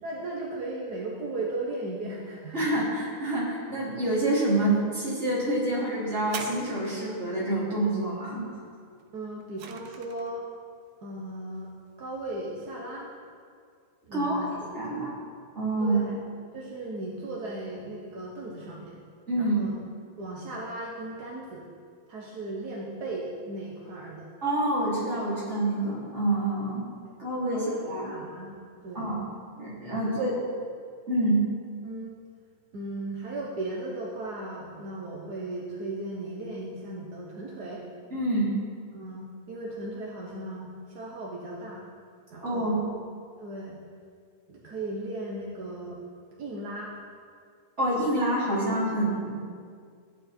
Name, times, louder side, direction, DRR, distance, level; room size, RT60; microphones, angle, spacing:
voice 1, 0.0-2.7 9.1-10.5 11.0-11.7 12.0-13.1 14.1-14.7 15.8-16.2 16.5-19.0 19.4-19.7 20.2-21.6 22.1-24.3 27.5-29.1 29.9-30.3 31.8-32.1 32.7-37.8 38.9-41.8 42.3-42.7 43.4-43.8 44.5-46.1 46.4-46.9, right 2 dB, 50° right, -3 dB, 1.2 m, -36 dB
voice 2, 2.5-8.4 14.1-14.5 14.7-15.1 15.6-16.0 19.3-19.6 24.4-26.8 27.2-28.1 28.9-29.2 29.6-30.3 31.1-31.4 38.1-38.5 42.4-42.8 47.8-49.3, right 1 dB, 20° right, -8 dB, 4.0 m, -27 dB
sound 1, 6.2-7.3 9.0-10.4 11.2-11.3, right 6 dB, 70° right, 1.5 m, -41 dB
14.5 x 11.0 x 4.5 m, 2.1 s
omnidirectional pair, 3.3 m